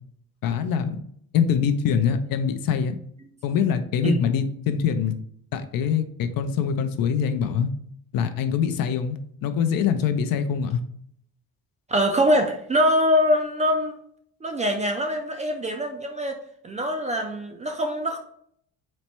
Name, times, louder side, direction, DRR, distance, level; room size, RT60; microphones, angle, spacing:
voice 1, 0.4-1.0 1.3-3.0 3.4-5.1 5.5-7.7 8.1-10.8, left 7 dB, 65° left, 9 dB, 0.5 m, -24 dB
voice 2, 11.9-14.0 14.4-16.4 16.6-18.2, equal, 20° right, 4 dB, 0.3 m, -23 dB
4.2 x 2.1 x 4.4 m, 0.66 s
cardioid pair, 130°, 38 cm